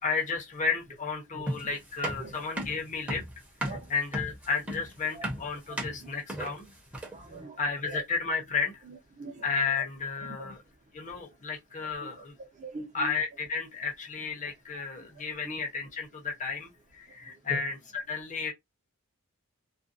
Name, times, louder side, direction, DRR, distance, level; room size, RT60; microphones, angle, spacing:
voice 1, 0.0-3.2 3.6-6.7 7.6-8.8 9.4-10.6 10.9-12.4 12.9-18.5, left 5 dB, 35° left, 0.8 m, -33 dB
voice 2, 1.3-1.7 2.2-2.4 3.7-3.8 5.1-5.3 5.7-6.1 6.4-6.5 7.1-7.6 7.8-8.0 8.8-9.5 9.8-9.9 10.4-10.5 12.0-12.1 12.6-13.1 15.5-15.6 17.5-17.6, right 2 dB, 35° right, 0.7 m, -42 dB
sound 1, 1.5-7.3, right 1 dB, 5° right, 0.8 m, -36 dB
2.5 x 2.2 x 2.5 m
head